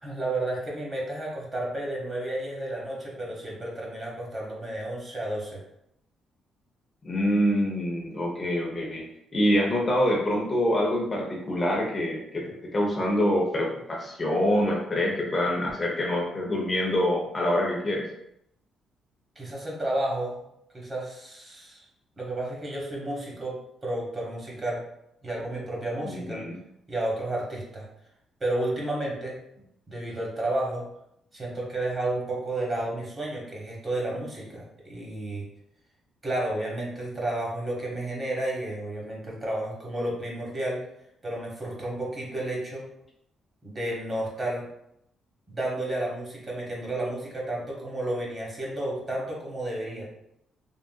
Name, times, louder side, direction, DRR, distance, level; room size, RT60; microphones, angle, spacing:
voice 1, 0.0-5.6 19.4-20.4 20.7-21.8 22.2-24.8 25.2-26.4 26.9-27.9 28.4-30.9 31.3-35.5 36.2-40.8 41.2-42.8 43.6-44.7 45.5-50.1, right 1 dB, 30° right, -3 dB, 1.1 m, -32 dB
voice 2, 7.0-18.1 26.0-26.6, equal, 30° left, -1 dB, 0.7 m, -26 dB
3.6 x 2.4 x 2.3 m, 0.78 s
cardioid pair, 90°, 0 cm